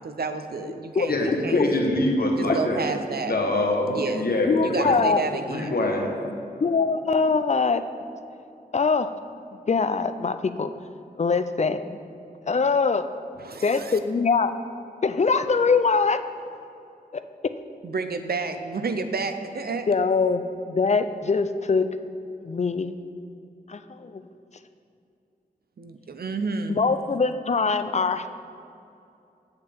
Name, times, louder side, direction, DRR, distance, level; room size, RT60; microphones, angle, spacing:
voice 1, 0.0-1.6 2.4-3.3 3.9-4.2 4.6-5.7 13.4-14.0 17.8-19.9 25.8-26.8, right 4 dB, 75° right, 8 dB, 0.6 m, -30 dB
voice 2, 1.1-2.8 3.3-5.0 5.5-6.2, left 1 dB, 70° left, 1 dB, 1.1 m, -24 dB
voice 3, 4.1-5.2 6.6-7.8 8.7-9.1 9.7-10.7 11.2-12.0 12.5-13.0 13.6-14.5 15.0-16.2 19.9-21.9 22.4-22.9 23.7-24.2 26.7-28.3, left 4 dB, 45° left, 11 dB, 0.4 m, -23 dB
8.7 x 7.9 x 3.5 m, 2.7 s
wide cardioid pair, 70°, 16 cm